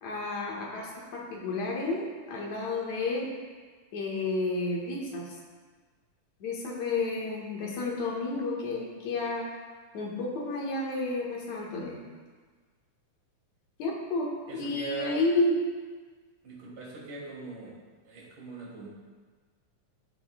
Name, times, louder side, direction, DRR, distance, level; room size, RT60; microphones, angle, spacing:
voice 1, 0.0-3.3 3.9-5.4 6.4-9.5 9.9-12.0 13.8-15.6, left 2 dB, 65° left, -2 dB, 2.7 m, -31 dB
voice 2, 14.5-15.1 16.4-17.7 18.1-18.9, right 5 dB, 80° right, -5 dB, 4.0 m, -40 dB
16.5 x 7.2 x 2.3 m, 1.5 s
omnidirectional pair, 3.5 m